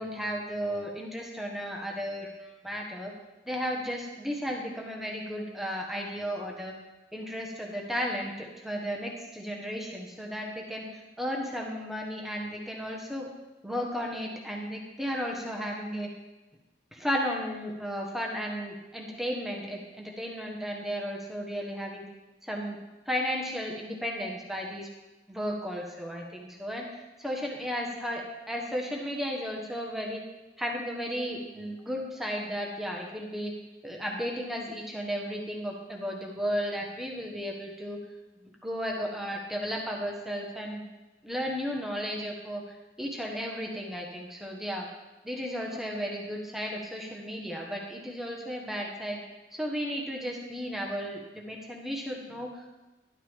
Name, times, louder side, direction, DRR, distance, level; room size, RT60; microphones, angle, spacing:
voice 1, 0.0-3.1 3.4-6.7 7.1-13.3 13.6-16.1 16.9-22.0 22.4-22.8 23.0-24.9 25.3-30.2 30.6-33.5 33.8-38.0 38.6-40.8 41.2-44.9 45.2-49.2 49.5-52.7, equal, ahead, -1 dB, 1.4 m, -34 dB
12.5 x 12.0 x 3.7 m, 1.1 s
head